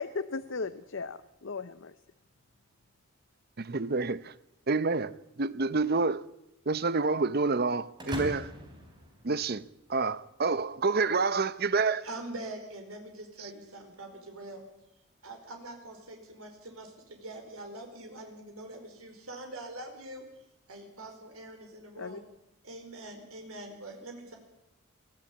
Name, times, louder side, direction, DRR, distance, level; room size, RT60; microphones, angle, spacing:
voice 1, 0.0-2.0 22.0-22.2, left 4 dB, 60° left, 0.7 m, -36 dB
voice 2, 3.6-4.3 4.7-6.2 6.7-8.5 9.2-12.1 13.4-13.5, right 4 dB, 45° right, 0.7 m, -28 dB
sound 1, 8.0-9.9, equal, 20° right, 4.3 m, -40 dB
voice 3, 12.0-14.6 15.2-20.2 20.7-22.2 22.6-24.4, right 1 dB, 85° right, 4.5 m, -44 dB
22.0 x 15.5 x 8.6 m
head